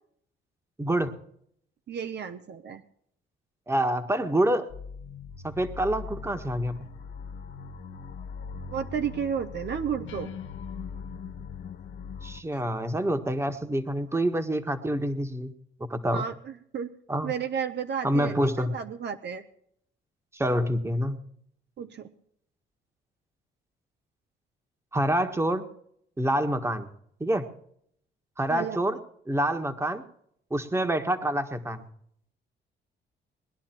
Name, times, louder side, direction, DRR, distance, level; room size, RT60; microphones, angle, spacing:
voice 1, 0.8-1.1 3.7-4.7 5.4-6.8 12.2-15.5 15.9-16.2 17.1-17.3 18.0-18.7 20.3-21.2 24.9-25.7 26.2-26.9 27.2-27.4 28.4-29.0 29.3-30.0 30.5-31.9, right 1 dB, 15° right, 7 dB, 1.6 m, -27 dB
voice 2, 1.9-2.8 8.7-10.3 14.1-14.2 16.1-16.9 17.2-19.4 21.8-22.1 28.5-28.8, right 7 dB, 60° right, 8 dB, 1.1 m, -32 dB
sound 1, 4.7-12.4, left 6 dB, 70° left, 1.4 m, -40 dB
21.0 x 11.0 x 4.5 m, 0.68 s
cardioid pair, 90°, 20 cm